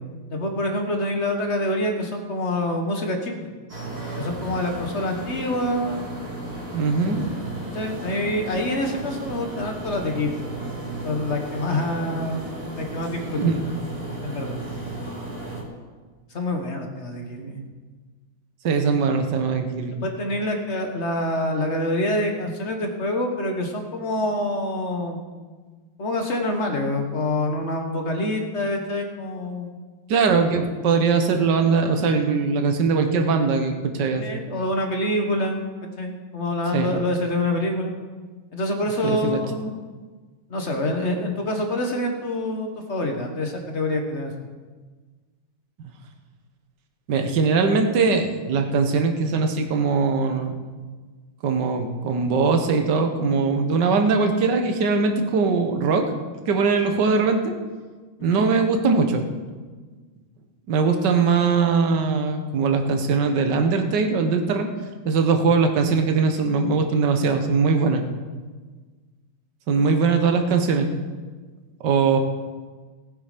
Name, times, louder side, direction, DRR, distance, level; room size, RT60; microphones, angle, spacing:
voice 1, 0.3-3.3 4.1-6.1 7.6-10.5 11.0-12.5 12.8-13.5 14.2-14.6 16.3-17.6 20.0-25.2 26.0-29.7 34.2-37.9 38.5-39.7 40.5-44.3 58.2-58.4 70.0-70.2, left 1 dB, 35° left, 4 dB, 1.6 m, -26 dB
sound 1, 3.7-15.6, right 2 dB, 25° right, 2.5 m, -34 dB
voice 2, 6.7-7.2 13.4-13.6 17.4-17.7 18.6-20.0 30.1-34.2 36.7-36.9 39.0-39.4 47.1-50.6 51.4-56.1 56.5-57.5 58.2-59.2 60.7-64.7 65.0-68.0 69.7-70.9 71.8-72.2, right 4 dB, 55° right, 5 dB, 1.7 m, -21 dB
18.5 x 8.8 x 5.2 m, 1.4 s
omnidirectional pair, 2.4 m